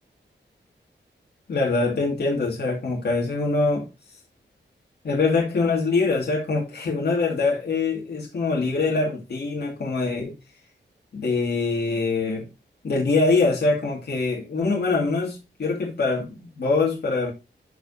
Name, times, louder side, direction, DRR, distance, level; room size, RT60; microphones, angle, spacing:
voice 1, 1.5-3.9 5.0-10.3 11.1-12.4 12.8-17.3, left 3 dB, 60° left, 2.6 m, -24 dB
13.5 x 5.0 x 2.9 m
wide cardioid pair, 175°, 19 cm